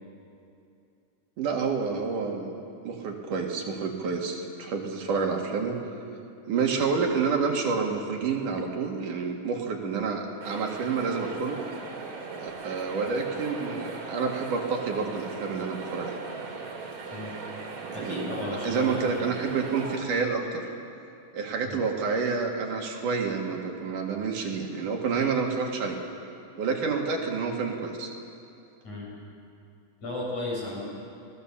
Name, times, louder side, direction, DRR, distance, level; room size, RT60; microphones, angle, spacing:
voice 1, 1.4-2.5 2.8-5.8 6.5-11.6 12.4-16.2 18.0-18.3 18.6-20.6 21.3-26.0 26.6-28.1, right 5 dB, 75° right, 1 dB, 3.5 m, -29 dB
sound 1, 10.4-20.0, right 4 dB, 55° right, 3.6 m, -38 dB
voice 2, 17.9-19.3 21.6-21.8 28.8-29.1 30.0-30.8, left 2 dB, 60° left, -5 dB, 8.6 m, -34 dB
27.5 x 19.0 x 7.3 m, 2.6 s
omnidirectional pair, 3.7 m